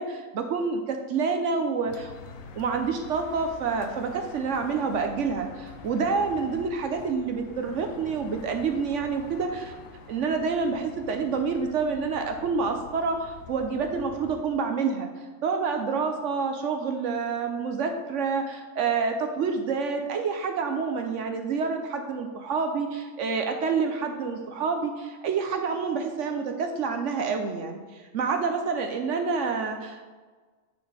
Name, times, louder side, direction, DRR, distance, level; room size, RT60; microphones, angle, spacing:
voice 1, 0.0-2.1 2.6-9.7 10.1-15.1 15.4-27.8 28.1-30.1, right 5 dB, 65° right, 5 dB, 0.8 m, -28 dB
sound 1, 1.9-14.4, left 5 dB, 70° left, 1.0 m, -46 dB
9.3 x 4.2 x 3.3 m, 1.4 s
omnidirectional pair, 1.5 m